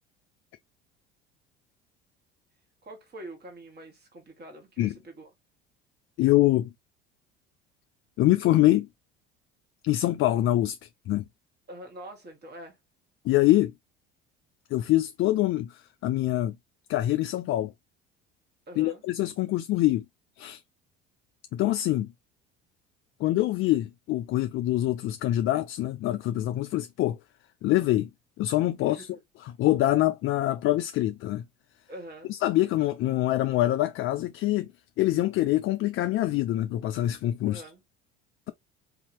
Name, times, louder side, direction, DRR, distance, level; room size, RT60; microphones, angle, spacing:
voice 1, 2.8-5.3 11.7-12.8 18.7-19.0 28.9-29.1 31.9-32.3 37.5-37.8, right 1 dB, 35° right, 1.8 m, -44 dB
voice 2, 6.2-6.7 8.2-8.9 9.8-10.8 11.1-11.2 13.2-13.7 14.7-16.5 16.9-17.7 18.8-20.0 20.4-20.6 21.5-22.1 23.2-27.2 27.6-28.1 28.4-29.1 29.6-31.4 32.3-34.7 35.0-37.6, left 15 dB, 45° left, 0.4 m, -25 dB
3.5 x 2.9 x 2.9 m
hypercardioid pair, 65°, 30 cm